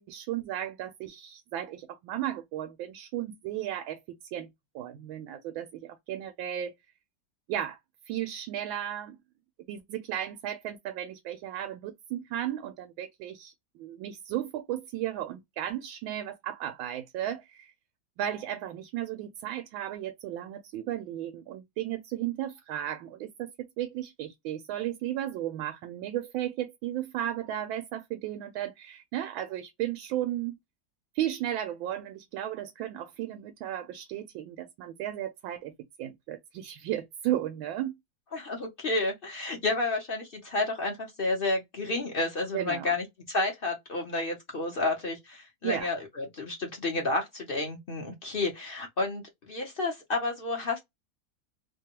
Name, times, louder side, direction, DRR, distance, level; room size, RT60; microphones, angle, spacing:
voice 1, 0.0-4.0 4.3-4.5 4.7-6.7 7.5-7.8 8.1-9.2 9.7-17.7 18.2-30.5 31.1-35.7 36.0-38.0 42.5-42.9 45.6-45.9, right 12 dB, 85° right, 1.4 m, -34 dB
voice 2, 38.3-50.8, left 2 dB, 50° left, 0.6 m, -31 dB
3.3 x 2.2 x 2.8 m
omnidirectional pair, 2.1 m